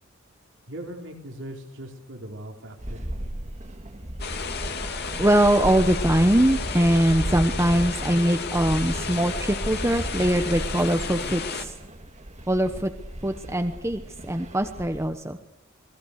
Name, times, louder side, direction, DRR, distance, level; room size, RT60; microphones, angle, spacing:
voice 1, 0.7-3.1, right 1 dB, 60° right, 2 dB, 4.0 m, -39 dB
sound 1, 2.8-15.1, right 1 dB, 35° right, 2.0 m, -34 dB
sound 2, 4.2-11.6, left 5 dB, 50° left, 2.6 m, -33 dB
voice 2, 5.2-11.7 12.5-12.9 13.2-15.4, right 1 dB, 15° right, 7 dB, 1.1 m, -22 dB
28.0 x 21.5 x 6.7 m, 0.93 s
head